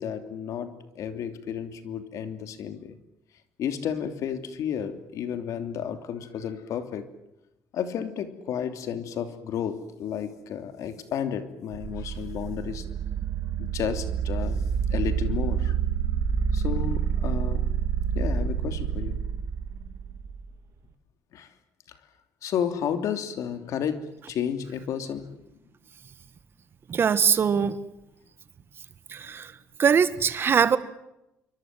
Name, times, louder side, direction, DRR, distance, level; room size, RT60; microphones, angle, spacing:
voice 1, 0.0-3.0 3.6-7.1 7.7-12.8 13.6-14.6 14.9-15.7 16.5-17.7 18.1-19.2 21.3-21.5 21.9-22.0 22.4-25.4, left 8 dB, 70° left, 8 dB, 3.0 m, -32 dB
sound 1, 11.7-20.5, right 7 dB, 65° right, 2.6 m, -28 dB
voice 2, 26.9-27.8 29.1-29.5 29.8-30.8, right 7 dB, 40° right, 14 dB, 1.6 m, -22 dB
27.5 x 24.5 x 7.7 m, 0.87 s
cardioid pair, 125°, 6 cm